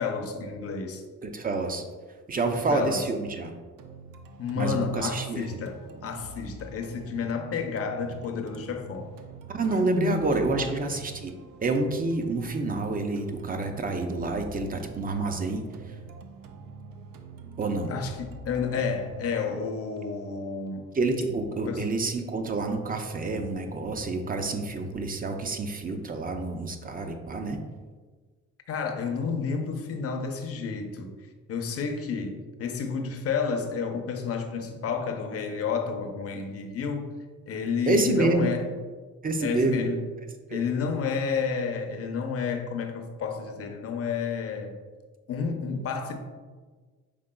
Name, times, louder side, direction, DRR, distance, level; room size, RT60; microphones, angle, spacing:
voice 1, 0.0-1.0 2.4-3.0 4.4-9.1 9.8-10.7 17.9-20.9 21.5-21.9 28.7-31.1 31.5-37.2 37.5-38.7 39.4-40.0 40.5-44.7 45.3-46.2, left 5 dB, 45° left, 5 dB, 0.6 m, -30 dB
voice 2, 1.2-1.8 2.3-3.5 4.6-5.5 9.5-11.3 11.6-16.0 17.6-17.9 20.9-27.6 37.9-38.5 39.2-39.8 40.5-40.6, right 3 dB, 30° right, 6 dB, 0.4 m, -28 dB
sound 1, 3.8-21.8, right 3 dB, 85° right, 0.5 m, -46 dB
5.1 x 3.5 x 2.2 m, 1.4 s
cardioid pair, 95°, 32 cm